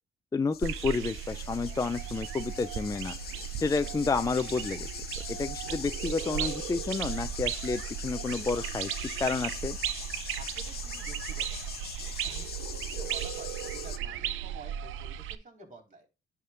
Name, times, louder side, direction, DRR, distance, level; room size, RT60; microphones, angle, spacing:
voice 1, 0.3-3.2 3.6-4.9 5.3-8.9 9.2-9.8, left 4 dB, 20° left, 0.4 m, -30 dB
sound 1, 0.5-14.0, left 8 dB, 55° left, 0.8 m, -42 dB
sound 2, 0.6-15.3, right 10 dB, 85° right, 0.6 m, -36 dB
voice 2, 10.4-11.8 12.1-16.1, right 2 dB, 40° right, 3.8 m, -50 dB
11.0 x 3.7 x 3.8 m
cardioid pair, 90°, 20 cm